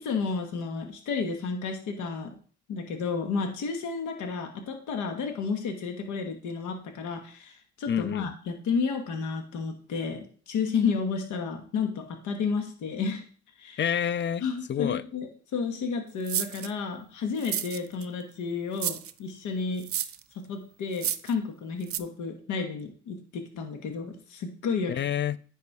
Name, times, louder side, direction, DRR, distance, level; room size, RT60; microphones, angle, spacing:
voice 1, 0.0-2.4 2.7-13.2 13.6-13.8 14.4-19.9 20.5-24.9, left 5 dB, 85° left, 4 dB, 1.3 m, -31 dB
voice 2, 7.9-8.3 13.8-14.4 14.7-15.0 24.9-25.4, left 9 dB, 40° left, 18 dB, 0.4 m, -28 dB
sound 1, 16.3-16.7 17.4-18.1 18.8-19.1 19.8-20.2 20.9-21.3 21.9-22.0, right 10 dB, 50° right, 0.6 m, -31 dB
9.6 x 4.3 x 4.7 m, 0.43 s
cardioid pair, 90°, 30 cm